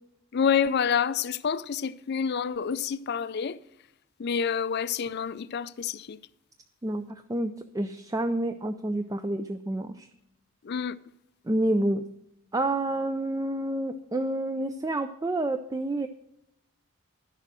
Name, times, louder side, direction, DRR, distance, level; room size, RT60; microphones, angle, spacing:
voice 1, 0.3-3.6 4.2-6.2 10.6-11.0, left 7 dB, 50° left, 0.4 m, -28 dB
voice 2, 6.8-10.1 11.5-12.0 12.5-16.1, right 1 dB, 15° right, 0.4 m, -29 dB
11.5 x 6.7 x 6.2 m
head